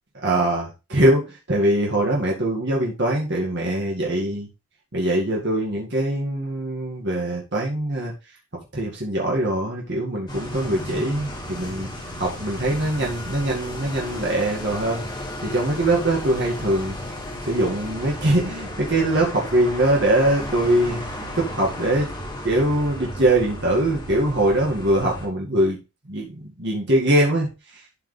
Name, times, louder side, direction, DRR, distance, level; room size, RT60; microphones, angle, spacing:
voice 1, 0.2-4.5 4.9-8.1 8.7-11.9 12.2-17.0 17.4-21.0 21.4-22.1 22.4-25.8 26.1-27.8, right 1 dB, 50° right, -2 dB, 2.0 m, -22 dB
sound 1, 10.3-25.3, left 1 dB, 20° left, 3.1 m, -34 dB
11.5 x 5.1 x 3.3 m, 0.28 s
head